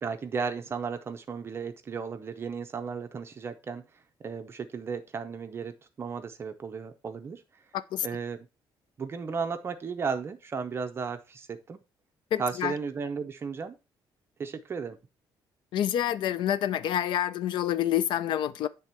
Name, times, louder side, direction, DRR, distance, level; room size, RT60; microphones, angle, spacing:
voice 1, 0.0-7.4 8.0-8.5 9.0-11.8 12.4-13.8 14.4-15.0, right 5 dB, 30° right, 0.5 m, -35 dB
voice 2, 7.7-8.1 12.3-12.7 15.7-18.7, left 11 dB, 70° left, 0.4 m, -27 dB
8.2 x 3.4 x 4.4 m
cardioid pair, 165°, 8 cm